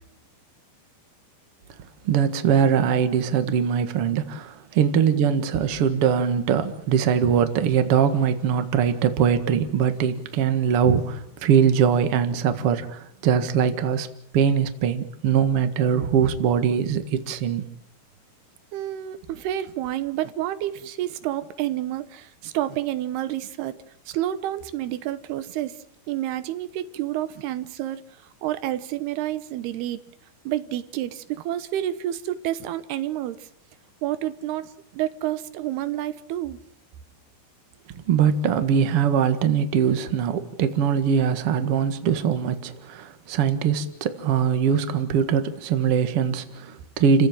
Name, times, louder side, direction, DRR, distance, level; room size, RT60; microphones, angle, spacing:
voice 1, 2.0-14.1 14.3-17.7 38.1-47.3, right 7 dB, 45° right, 2.1 m, -22 dB
voice 2, 18.7-23.8 24.1-28.0 28.4-30.1 30.5-33.5 34.0-36.6, right 13 dB, 85° right, 3.1 m, -29 dB
29.5 x 16.0 x 7.6 m
omnidirectional pair, 4.5 m